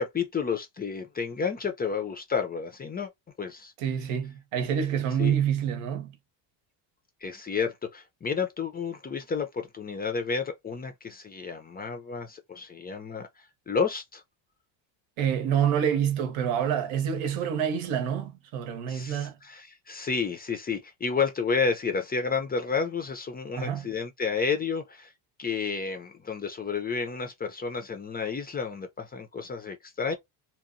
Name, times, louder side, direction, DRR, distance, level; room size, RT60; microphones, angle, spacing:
voice 1, 0.0-3.1 3.4-3.7 5.2-5.4 7.2-14.2 18.9-25.1 25.4-30.1, left 5 dB, 20° left, 0.4 m, -31 dB
voice 2, 3.8-6.1 15.2-19.4 23.6-23.8, right 8 dB, 90° right, 0.9 m, -27 dB
2.9 x 2.0 x 2.5 m
cardioid pair, 130°, 46 cm